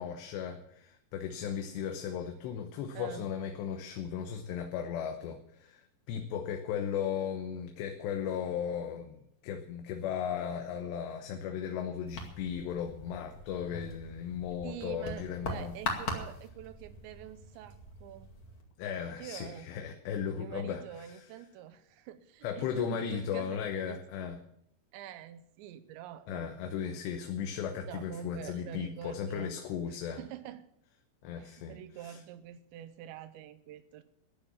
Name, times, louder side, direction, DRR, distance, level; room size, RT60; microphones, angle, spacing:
voice 1, 0.0-5.8 6.1-9.2 9.4-15.7 18.8-21.2 22.4-24.4 26.3-30.2 31.2-31.8 32.0-32.1, left 8 dB, 80° left, 5 dB, 3.1 m, -36 dB
voice 2, 2.9-3.3 14.6-18.3 19.2-19.7 20.4-24.2 24.9-27.0 27.9-29.6 29.9-30.7 31.3-34.0, right 11 dB, 90° right, 12 dB, 3.1 m, -46 dB
sound 1, 12.1-18.6, left 2 dB, 40° left, 2.3 m, -41 dB
14.0 x 10.0 x 7.1 m, 0.71 s
omnidirectional pair, 5.1 m